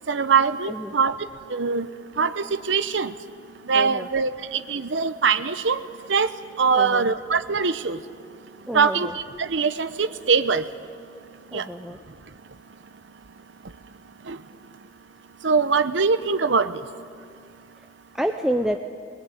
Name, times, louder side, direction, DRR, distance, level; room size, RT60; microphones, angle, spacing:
voice 1, 0.1-1.1 1.5-1.9 2.2-3.1 3.7-5.8 6.1-6.3 6.6-8.0 8.7-9.1 9.4-10.6 11.5-11.6 14.3-14.4 15.4-16.7, right 5 dB, 85° right, 11 dB, 0.8 m, -22 dB
voice 2, 3.7-4.1 6.8-7.1 8.7-9.2 11.5-12.0 18.1-18.8, equal, 5° right, 4 dB, 0.6 m, -28 dB
21.5 x 20.5 x 9.2 m, 2.3 s
head